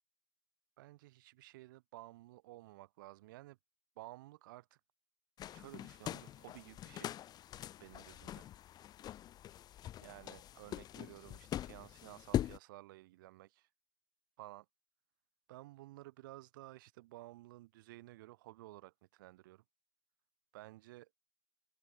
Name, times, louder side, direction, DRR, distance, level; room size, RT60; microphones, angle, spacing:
voice 1, 0.8-3.6 4.0-4.8 5.5-7.2 7.8-8.5 10.0-13.7 14.4-14.7 15.5-19.6 20.5-21.1, right 18 dB, 65° right, 3.3 m, -54 dB
sound 1, 5.4-12.6, left 12 dB, 35° left, 2.3 m, -42 dB
hypercardioid pair, 105°, 12 cm